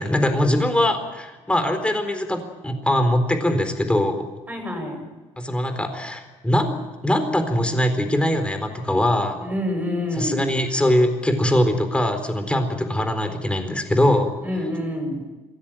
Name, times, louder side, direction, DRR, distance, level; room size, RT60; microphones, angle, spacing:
voice 1, 0.0-4.2 5.4-6.8 7.0-9.4 10.1-14.3, left 1 dB, 10° left, 8 dB, 4.2 m, -22 dB
voice 2, 4.5-5.0 9.4-10.5 14.4-15.2, left 1 dB, 15° right, 3 dB, 7.9 m, -27 dB
23.0 x 17.0 x 9.0 m, 1.2 s
supercardioid pair, 90°, 12 cm